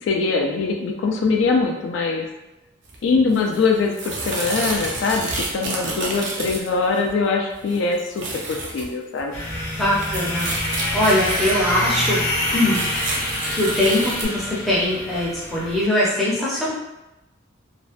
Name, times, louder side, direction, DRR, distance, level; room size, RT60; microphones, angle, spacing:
voice 1, 0.0-2.3 3.0-9.3, left 4 dB, 70° left, 1 dB, 0.3 m, -22 dB
sound 1, 2.9-3.0 3.3-7.1 7.5-8.9 9.2-9.3 9.6-11.9 12.3-14.3, right 3 dB, 65° right, 0.5 m, -30 dB
sound 2, 9.3-15.8, left 1 dB, 45° left, 0.7 m, -26 dB
voice 2, 9.8-12.2 12.5-12.8 13.5-16.7, left 1 dB, ahead, -9 dB, 0.5 m, -22 dB
2.4 x 2.1 x 2.4 m, 0.96 s
head